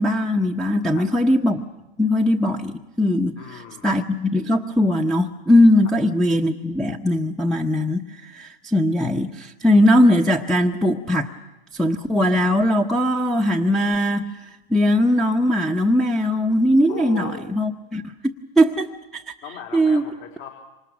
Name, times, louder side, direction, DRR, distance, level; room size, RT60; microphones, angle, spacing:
voice 1, 0.0-1.6 2.0-11.3 11.7-14.3 14.7-18.9 19.1-19.3 19.7-20.0, left 1 dB, ahead, 5 dB, 1.0 m, -20 dB
voice 2, 3.4-4.0 5.8-5.9 16.9-17.6 19.4-20.5, left 8 dB, 50° left, 2 dB, 4.2 m, -37 dB
27.0 x 25.5 x 6.2 m, 1.0 s
hypercardioid pair, 115°, 30 cm